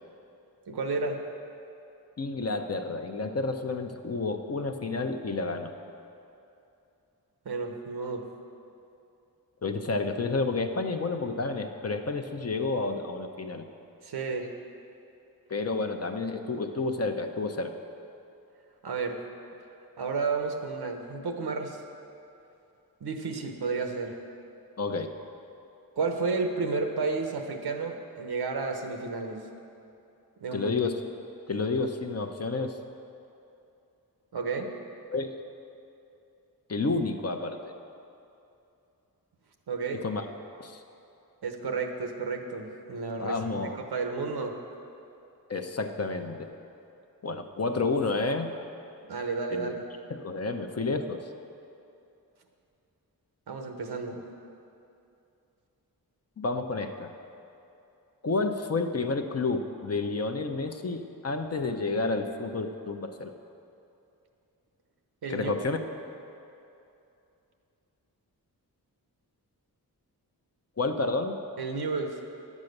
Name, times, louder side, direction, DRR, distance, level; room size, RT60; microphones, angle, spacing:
voice 1, 0.7-1.2 7.4-8.3 14.0-14.5 18.8-19.2 20.0-21.8 23.0-24.2 26.0-29.4 30.4-30.7 34.3-34.7 39.7-40.0 41.4-43.4 43.7-44.5 49.1-49.8 53.5-54.2 65.2-65.5 71.6-72.2, right 4 dB, 90° right, 4 dB, 1.0 m, -31 dB
voice 2, 2.2-5.7 9.6-13.6 15.5-17.7 24.8-25.1 30.5-31.0 31.5-32.8 35.1-35.3 36.7-37.7 40.0-40.3 40.6-40.8 43.2-43.8 45.5-46.5 47.2-48.5 49.5-49.7 50.1-51.3 56.4-57.1 58.2-63.3 65.3-65.8 70.8-71.4, left 3 dB, 40° left, 6 dB, 0.7 m, -30 dB
10.5 x 7.4 x 6.6 m, 2.7 s
wide cardioid pair, 110°, 37 cm